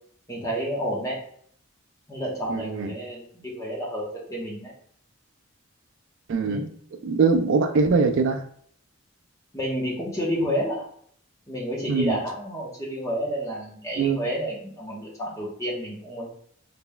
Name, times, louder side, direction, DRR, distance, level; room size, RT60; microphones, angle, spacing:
voice 1, 0.3-1.2 2.1-4.7 6.5-6.7 9.5-10.8 11.5-16.3, equal, 15° left, -4 dB, 1.0 m, -30 dB
voice 2, 2.5-2.9 6.3-6.7 7.0-8.4 11.9-12.2 14.0-14.3, right 4 dB, 65° right, 6 dB, 0.3 m, -22 dB
3.8 x 3.4 x 2.2 m, 0.62 s
head